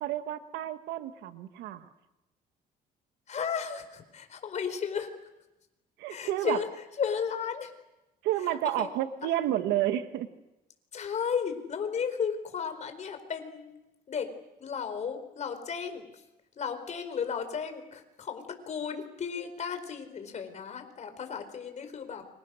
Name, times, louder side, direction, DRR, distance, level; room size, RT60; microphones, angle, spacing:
voice 1, 0.0-1.9 6.0-6.6 8.2-10.3, right 12 dB, 90° right, 9 dB, 1.6 m, -30 dB
voice 2, 3.3-5.1 6.1-6.7 7.0-7.7 8.4-8.9 9.2-9.3 10.9-13.7 14.1-14.3 14.6-16.2 16.5-22.3, left 6 dB, 45° left, 8 dB, 4.6 m, -34 dB
29.5 x 26.0 x 6.4 m, 0.97 s
cardioid pair, 110°, 17 cm